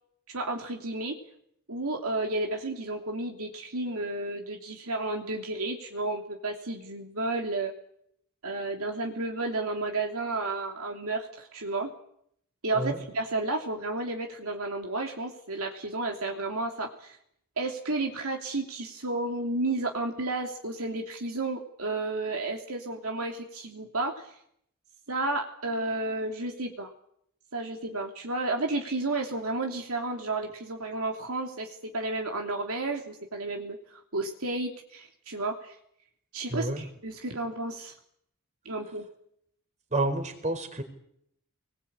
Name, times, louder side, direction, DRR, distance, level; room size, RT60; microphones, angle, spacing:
voice 1, 0.3-1.2 1.7-7.7 8.4-11.9 12.6-17.2 17.6-24.3 25.1-26.9 27.5-35.7 36.3-37.9 38.6-39.1, right 2 dB, 70° right, 2 dB, 3.0 m, -32 dB
voice 2, 36.5-36.9 39.9-40.8, right 2 dB, 30° right, 7 dB, 4.3 m, -29 dB
24.5 x 21.0 x 8.8 m, 0.72 s
head